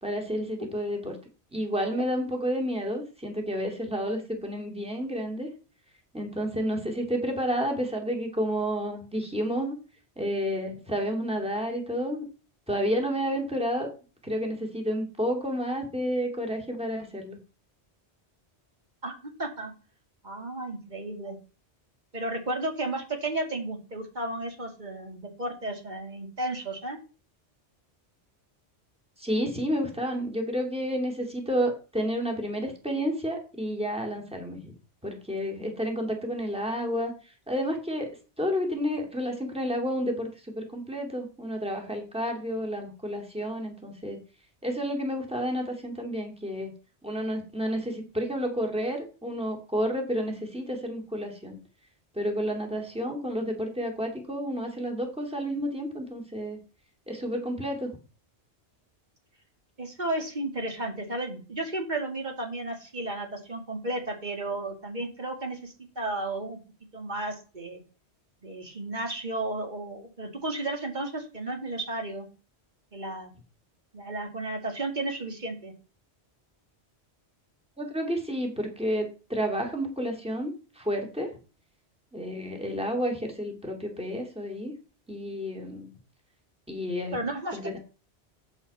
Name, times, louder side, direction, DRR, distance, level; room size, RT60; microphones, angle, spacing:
voice 1, 0.0-1.1 1.5-5.5 6.1-9.8 10.2-12.2 12.7-13.9 14.2-17.4 29.2-34.7 35.0-37.1 37.5-38.1 38.4-44.2 44.6-46.7 47.0-51.6 52.1-56.6 57.1-58.0 77.8-81.3 82.1-84.7 85.1-85.9 86.7-87.1 87.5-87.8, equal, 5° right, 2 dB, 2.6 m, -30 dB
voice 2, 19.0-19.7 20.2-21.4 22.1-27.0 59.8-66.6 66.9-67.8 68.4-72.3 72.9-73.3 73.9-75.7 87.1-87.8, right 2 dB, 40° right, 3 dB, 2.7 m, -33 dB
11.0 x 8.5 x 4.3 m, 0.34 s
omnidirectional pair, 1.1 m